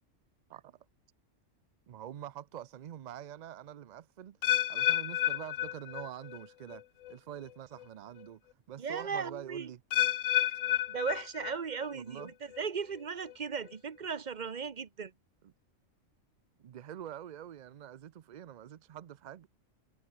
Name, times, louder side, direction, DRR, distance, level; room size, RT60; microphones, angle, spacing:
voice 1, 1.9-4.4 4.7-6.8 7.1-8.4 8.7-9.8 10.5-10.6 11.9-12.3 16.6-19.5, right 10 dB, 70° right, 0.4 m, -45 dB
sound 1, 4.4-6.4 6.7-7.1 7.8-7.9 9.9-11.9 12.2-12.6 13.3-13.4, left 13 dB, 80° left, 1.0 m, -31 dB
voice 2, 8.8-9.7 10.9-15.1, right 6 dB, 40° right, 1.0 m, -37 dB
omnidirectional pair, 1.3 m